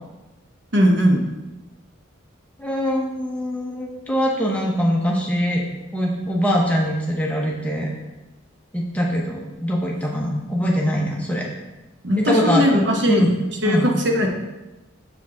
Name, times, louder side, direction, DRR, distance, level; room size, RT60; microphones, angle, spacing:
voice 1, 0.7-1.2 12.0-13.2 13.6-14.3, equal, 60° right, 2 dB, 0.9 m, -18 dB
voice 2, 2.6-5.6 5.9-7.9 8.7-11.5 12.2-12.7 13.1-13.3 13.6-13.9, equal, 5° left, -2 dB, 0.8 m, -22 dB
7.6 x 4.8 x 3.5 m, 1.0 s
head